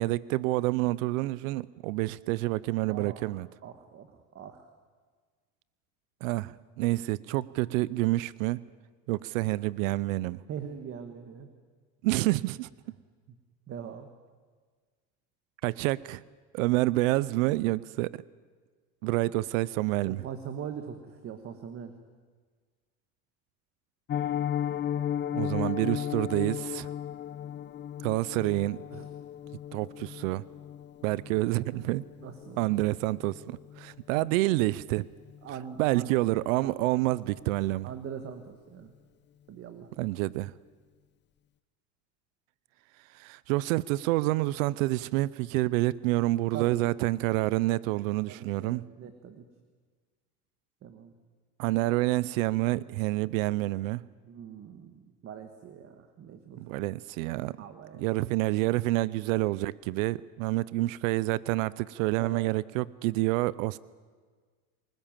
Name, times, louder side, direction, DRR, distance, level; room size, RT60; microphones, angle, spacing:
voice 1, 0.0-3.5 6.2-8.6 9.1-10.4 12.0-12.7 15.6-16.2 16.5-18.2 19.0-20.2 25.3-26.9 28.0-28.8 29.7-30.4 31.0-32.0 32.6-35.1 35.8-37.9 40.0-40.5 43.1-48.8 51.6-54.0 56.6-57.6 57.9-63.8, right 19 dB, 85° right, 20 dB, 0.7 m, -28 dB
voice 2, 2.9-4.7 10.5-11.5 13.7-14.1 20.0-21.9 28.9-29.1 32.2-32.7 35.4-36.1 36.6-36.8 37.1-37.2 37.8-38.9 39.5-40.1 46.5-46.8 48.3-49.4 50.8-51.1 54.2-56.6 57.6-58.0 62.2-62.5, right 8 dB, 35° right, 8 dB, 1.6 m, -42 dB
Piano, 24.1-35.0 35.3-35.5 35.8-35.9 36.3-36.5 36.9-37.0, left 10 dB, 30° left, 0.8 m, -36 dB
29.0 x 20.0 x 7.5 m, 1.5 s
supercardioid pair, 140°, 39 cm